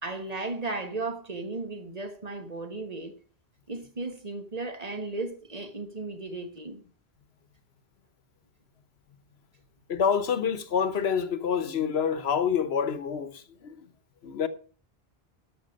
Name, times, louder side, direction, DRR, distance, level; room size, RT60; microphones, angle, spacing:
voice 1, 0.0-3.1 3.7-6.8, right 3 dB, 40° right, 1.4 m, -35 dB
voice 2, 9.9-13.9 14.2-14.5, left 7 dB, 80° left, 1.2 m, -27 dB
13.0 x 6.6 x 6.4 m
omnidirectional pair, 1.0 m